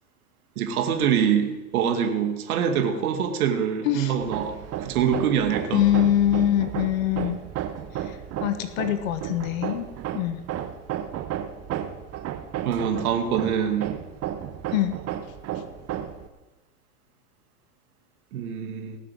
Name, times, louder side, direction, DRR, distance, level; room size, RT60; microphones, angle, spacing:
voice 1, 0.6-6.0 12.6-13.9 18.3-19.0, right 8 dB, 65° right, 5 dB, 2.4 m, -25 dB
Hammer, 4.2-16.3, right 10 dB, 30° right, 1.2 m, -33 dB
voice 2, 5.7-7.4 8.0-9.9 10.1-10.4 14.7-15.0, left 12 dB, 55° left, 10 dB, 1.5 m, -24 dB
18.5 x 7.5 x 7.9 m, 1.1 s
hypercardioid pair, 100°, 47 cm